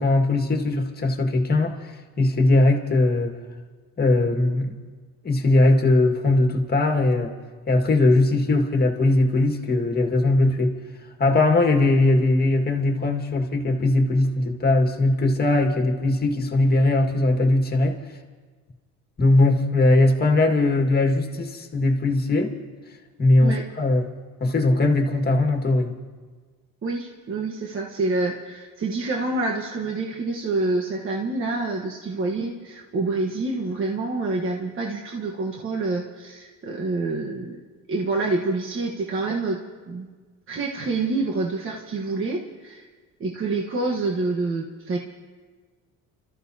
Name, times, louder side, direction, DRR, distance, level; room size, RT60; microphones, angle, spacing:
voice 1, 0.0-3.4 4.0-4.7 5.2-7.3 7.7-10.7 11.2-18.0 19.2-22.5 23.2-24.1 24.4-25.9, left 2 dB, 30° left, 3 dB, 1.9 m, -20 dB
voice 2, 26.8-37.6 37.9-39.6 39.9-40.1 40.5-42.9 43.2-45.0, right 3 dB, 40° right, -1 dB, 1.3 m, -27 dB
30.0 x 14.0 x 2.8 m, 1.4 s
cardioid pair, 105°, 32 cm